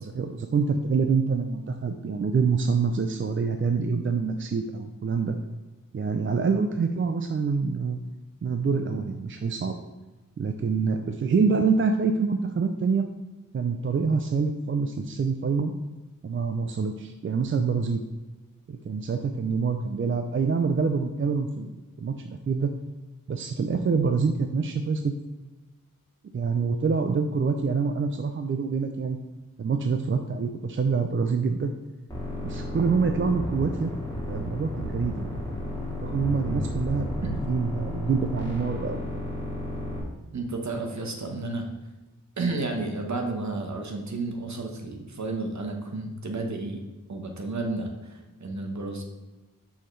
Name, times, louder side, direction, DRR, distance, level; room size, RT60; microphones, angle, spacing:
voice 1, 0.1-5.4 5.9-8.0 8.4-9.8 10.4-13.0 13.5-15.7 16.2-18.0 18.7-21.7 22.0-22.7 23.3-25.1 26.3-29.2 29.6-31.7 32.4-33.9 34.3-35.3 36.0-37.1 37.5-39.0, right 5 dB, 40° right, 6 dB, 0.4 m, -26 dB
sound 1, 32.1-40.0, left 1 dB, 10° left, 2.1 m, -33 dB
voice 2, 40.3-41.7 42.4-46.8 47.1-49.0, right 2 dB, 55° right, 3 dB, 1.1 m, -32 dB
6.7 x 5.7 x 3.2 m, 1.2 s
wide cardioid pair, 105°, 34 cm